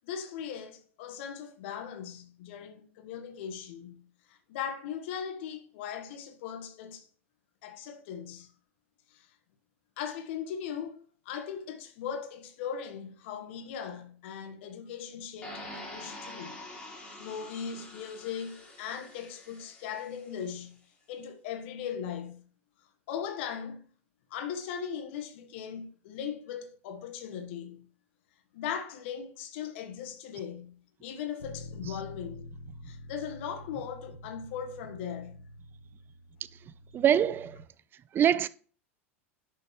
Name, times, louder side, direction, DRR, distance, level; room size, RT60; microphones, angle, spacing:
voice 1, 0.0-4.0 4.3-7.0 7.6-8.5 9.1-9.3 10.0-11.0 11.2-16.6 17.2-20.8 21.1-22.4 23.1-23.9 24.3-27.9 28.5-30.8 31.0-32.5 32.8-35.4, left 8 dB, 60° left, 1.4 m, -39 dB
sound 1, 15.4-20.4, left 1 dB, 15° left, 4.3 m, -46 dB
Bass guitar, 31.4-37.6, left 2 dB, 80° left, 0.8 m, -47 dB
voice 2, 36.9-37.6 38.1-38.5, right 9 dB, 30° right, 0.5 m, -24 dB
10.5 x 6.2 x 3.2 m
figure-of-eight pair, 85°, 7 cm